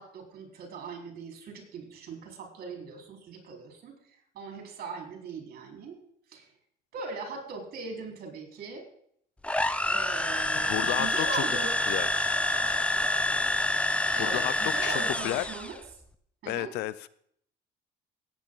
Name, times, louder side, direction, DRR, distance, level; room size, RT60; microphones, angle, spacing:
voice 1, 0.0-4.0 4.3-6.0 6.3-6.5 6.9-8.8 9.8-11.7 14.1-15.8 16.4-16.7, right 4 dB, 65° right, 3 dB, 4.5 m, -40 dB
sound 1, 9.4-15.8, left 1 dB, 5° left, 0.8 m, -27 dB
voice 2, 10.5-11.4 11.9-12.1 14.2-14.5 14.8-15.4 16.5-17.1, left 15 dB, 85° left, 18 dB, 0.7 m, -32 dB
17.5 x 8.8 x 3.9 m, 0.66 s
cardioid pair, 110°, 17 cm